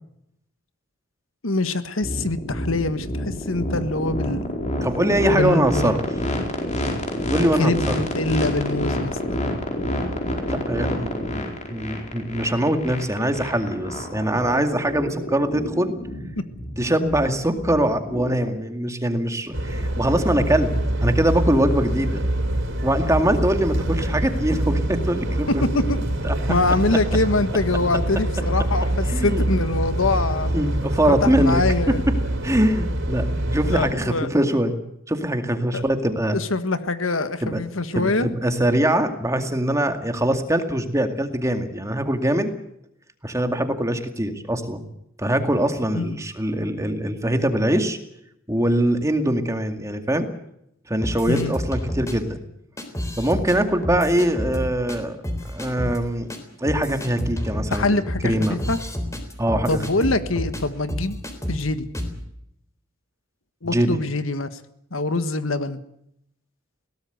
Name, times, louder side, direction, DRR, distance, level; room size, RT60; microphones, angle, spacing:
voice 1, 1.4-4.5 5.3-5.9 7.6-9.4 16.4-16.5 25.5-26.0 26.5-30.5 31.1-32.0 33.7-34.3 35.7-35.8 36.3-38.3 45.9-46.2 51.3-51.5 57.7-58.8 59.7-61.2 61.5-61.9 63.6-64.5 64.9-65.8, left 2 dB, 70° left, 11 dB, 1.5 m, -24 dB
sound 1, 2.0-18.5, left 1 dB, 35° left, 4.7 m, -28 dB
voice 2, 4.8-6.0 7.3-8.0 10.5-15.9 16.8-20.7 21.0-22.2 22.8-25.8 26.2-26.3 29.1-29.4 30.5-31.6 31.9-32.0 32.4-34.8 35.1-36.4 37.4-37.6 37.9-42.5 43.2-44.9 45.2-48.0 48.5-50.3 50.9-52.4 53.2-55.2 55.4-56.3 56.6-58.6 59.4-60.2 63.6-63.9, right 1 dB, 15° right, 6 dB, 2.1 m, -23 dB
sound 2, 19.5-33.9, right 1 dB, 65° right, 4.7 m, -25 dB
sound 3, 51.0-52.1 52.8-53.6 53.8-55.0 55.2-56.0 56.3-56.4 56.6-60.6 60.9-61.6 61.9-62.2, left 1 dB, 15° left, 3.8 m, -29 dB
22.0 x 17.5 x 8.1 m, 0.76 s
head